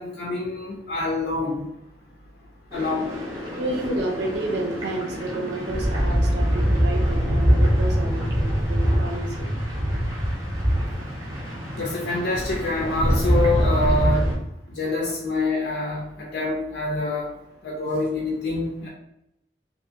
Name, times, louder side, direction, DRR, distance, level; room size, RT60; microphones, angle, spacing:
voice 1, 0.0-1.6 2.7-3.1 11.8-14.3 14.7-17.3 17.6-18.9, left 2 dB, 80° left, -3 dB, 0.5 m, -26 dB
sound 1, 2.7-14.4, equal, 15° right, 0.6 m, -24 dB
voice 2, 3.6-9.5 12.0-12.3 12.5-12.6 13.0-13.3 14.1-14.2 15.1-15.3, right 2 dB, 75° right, 0 dB, 0.7 m, -31 dB
2.8 x 2.5 x 2.7 m, 0.83 s
head